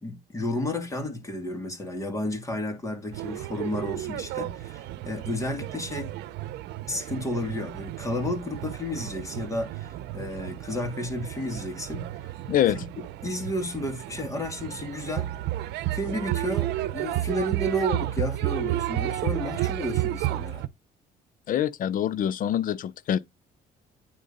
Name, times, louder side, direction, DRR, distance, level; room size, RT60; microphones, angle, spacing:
voice 1, 0.0-6.1 6.9-12.3 12.7-12.9 13.2-15.3 15.9-20.7, left 1 dB, 20° left, 2.5 m, -32 dB
sound 1, 3.1-20.7, right 14 dB, 80° right, 0.8 m, -32 dB
voice 2, 21.5-23.2, left 10 dB, 55° left, 0.6 m, -25 dB
9.2 x 3.6 x 5.4 m
cardioid pair, 110°, 17 cm